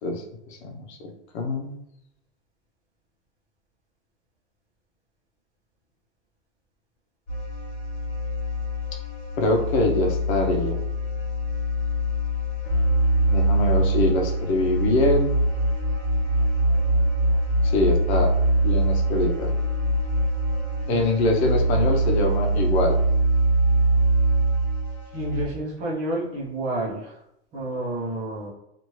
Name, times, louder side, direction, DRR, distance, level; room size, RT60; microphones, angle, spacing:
voice 1, 0.0-1.7 9.4-10.8 13.3-15.4 17.6-18.3 18.6-19.5 20.9-23.0, left 2 dB, 70° left, 2 dB, 0.8 m, -24 dB
sound 1, 7.3-25.4, right 1 dB, 55° left, 1.4 m, -23 dB
voice 2, 20.9-21.3 25.1-27.1 27.5-28.5, right 1 dB, 20° right, -6 dB, 0.7 m, -30 dB
3.0 x 2.5 x 3.1 m, 0.79 s
supercardioid pair, 175°, 33 cm